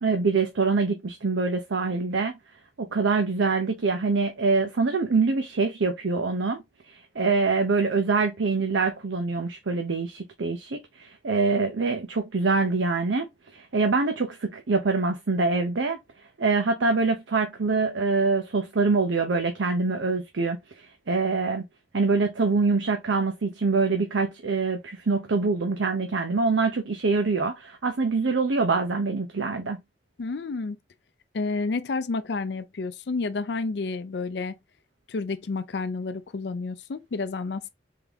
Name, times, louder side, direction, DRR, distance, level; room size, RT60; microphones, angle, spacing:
voice 1, 0.0-2.4 2.8-13.3 13.5-16.0 16.4-21.6 21.9-29.8, right 4 dB, 85° right, 0.7 m, -25 dB
voice 2, 30.2-30.8 31.3-34.6 35.1-37.7, left 3 dB, 65° left, 0.4 m, -30 dB
3.8 x 3.5 x 3.4 m
head